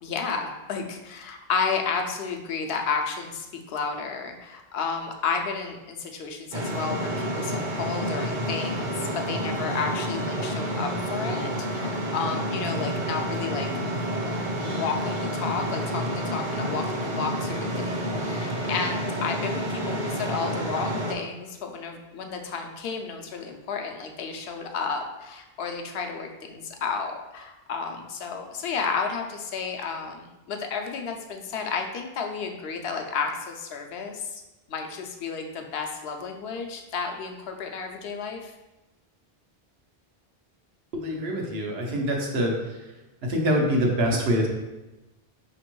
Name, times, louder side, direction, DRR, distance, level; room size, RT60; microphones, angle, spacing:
voice 1, 0.0-13.7 14.6-34.4 34.7-38.5, left 5 dB, 75° left, 3 dB, 0.8 m, -32 dB
sound 1, 6.5-21.1, equal, 55° right, 0.8 m, -29 dB
voice 2, 40.9-42.5 43.3-44.5, equal, 85° right, 0 dB, 1.0 m, -24 dB
5.0 x 3.0 x 3.0 m, 1.0 s
omnidirectional pair, 1.0 m